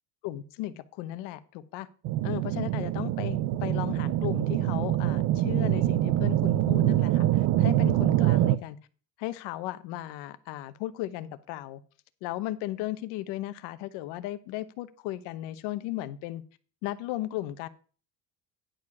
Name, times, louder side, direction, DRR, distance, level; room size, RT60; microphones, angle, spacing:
voice 1, 0.2-1.9 2.2-8.8 9.2-11.8 12.2-16.4 16.8-17.7, left 15 dB, 90° left, 0.9 m, -35 dB
sound 1, 2.0-8.6, right 14 dB, 50° right, 0.5 m, -25 dB
10.5 x 4.9 x 5.9 m
cardioid pair, 175°, 40 cm